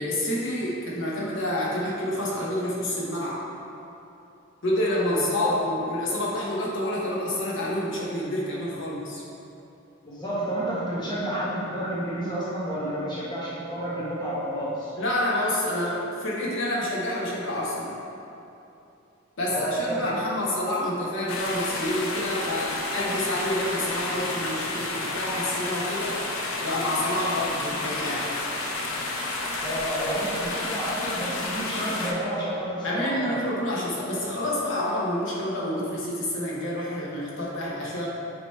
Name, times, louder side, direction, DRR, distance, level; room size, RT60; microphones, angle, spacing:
voice 1, 0.0-3.5 4.6-9.2 15.0-17.9 19.4-26.2 26.6-28.4 32.8-38.1, left 1 dB, 65° left, -6 dB, 1.1 m, -28 dB
voice 2, 5.1-5.5 10.0-14.9 19.5-20.0 29.6-33.4, right 1 dB, 20° left, -8 dB, 1.3 m, -30 dB
sound 1, 21.3-32.1, left 2 dB, 90° left, 0.8 m, -31 dB
8.7 x 3.0 x 4.5 m, 2.8 s
head